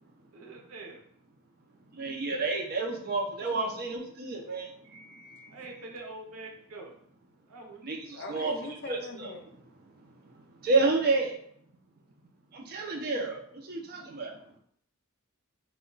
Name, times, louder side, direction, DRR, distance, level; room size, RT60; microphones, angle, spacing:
voice 1, 0.3-1.1 5.5-6.9 7.5-7.8, right 2 dB, 90° right, 2 dB, 0.6 m, -44 dB
voice 2, 2.0-4.7 7.8-8.5 8.9-9.3 10.6-11.3 12.5-13.4 13.7-14.3, right 3 dB, 45° right, 1 dB, 0.5 m, -29 dB
voice 3, 3.4-3.8 8.1-9.4, left 2 dB, 55° left, 4 dB, 0.5 m, -42 dB
2.2 x 2.1 x 3.7 m, 0.66 s
head